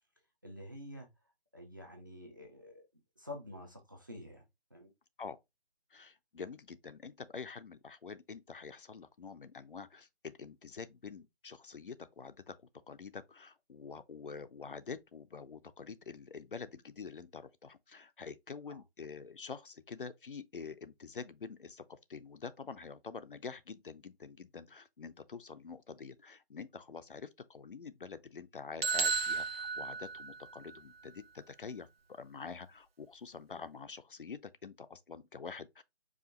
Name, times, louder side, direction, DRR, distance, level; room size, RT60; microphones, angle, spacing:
voice 1, 0.4-1.1 1.5-2.9 3.2-4.4 4.7-4.9 18.7-18.8, left 1 dB, 20° right, 0.5 m, -48 dB
voice 2, 5.9-12.6 12.9-35.8, left 5 dB, 55° left, 0.5 m, -47 dB
sound 1, 28.8-30.8, right 5 dB, 65° right, 0.6 m, -34 dB
4.9 x 2.5 x 3.7 m
figure-of-eight pair, 155°, 32 cm